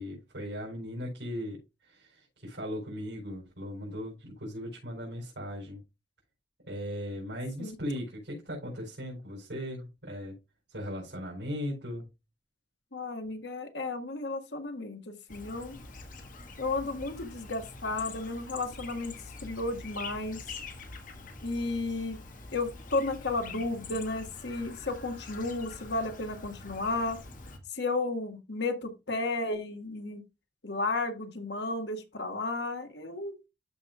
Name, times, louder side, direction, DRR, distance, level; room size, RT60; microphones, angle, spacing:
voice 1, 0.0-5.8 6.7-10.4 10.7-12.1, equal, 85° right, 4.5 m, -38 dB
voice 2, 12.9-15.8 16.6-19.1 19.4-20.4 21.4-22.2 22.5-27.2 27.7-30.2 30.6-33.3, left 2 dB, 75° left, 1.7 m, -33 dB
Chirp tweet, 15.3-27.6, left 3 dB, 50° left, 1.6 m, -45 dB
13.0 x 5.2 x 2.4 m
head